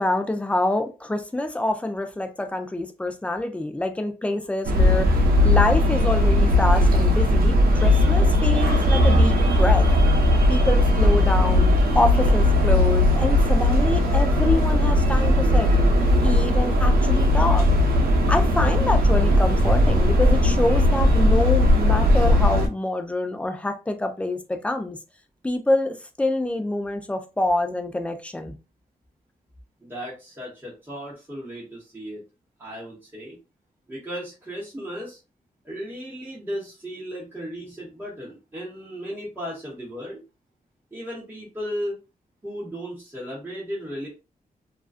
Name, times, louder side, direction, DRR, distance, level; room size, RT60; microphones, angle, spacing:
voice 1, 0.0-9.9 10.5-15.7 16.2-17.7 18.3-25.0 25.4-28.5, left 1 dB, 10° left, 0.4 m, -26 dB
sound 1, 4.6-22.7, left 1 dB, 85° right, 0.6 m, -18 dB
voice 2, 29.8-32.2 32.6-33.4 33.9-35.2 35.6-40.2 40.9-42.0 42.4-44.1, equal, 15° right, 1.0 m, -35 dB
2.4 x 2.3 x 2.3 m
wide cardioid pair, 130°, 15 cm